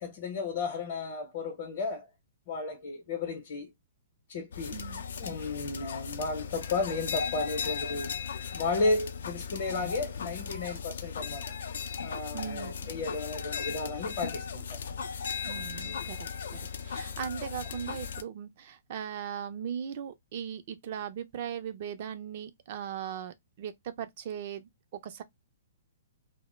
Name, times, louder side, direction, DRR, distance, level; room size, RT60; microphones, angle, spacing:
voice 1, 0.0-2.1 2.5-3.7 4.3-4.8 5.2-8.1 8.5-11.5 12.0-14.8, left 3 dB, 50° left, 0.7 m, -33 dB
sound 1, 4.5-18.2, left 6 dB, 70° left, 0.4 m, -37 dB
voice 2, 4.7-5.0 12.3-12.9 15.4-16.6 16.8-25.2, right 8 dB, 50° right, 0.4 m, -39 dB
2.1 x 2.0 x 3.0 m
hypercardioid pair, 125°, 0 cm